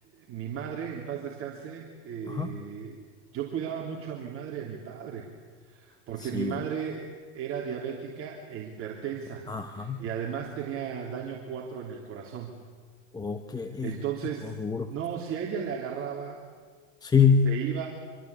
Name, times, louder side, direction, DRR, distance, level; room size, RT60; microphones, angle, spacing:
voice 1, 0.1-3.0 3.3-5.3 5.6-12.5 13.8-14.5 14.9-16.4 17.4-17.9, right 8 dB, 35° right, -1 dB, 3.3 m, -35 dB
voice 2, 6.2-6.6 9.5-10.0 13.1-13.9 14.6-14.9 17.0-17.5, left 6 dB, 10° left, 8 dB, 1.0 m, -25 dB
26.5 x 23.5 x 8.5 m, 1.5 s
supercardioid pair, 130°, 38 cm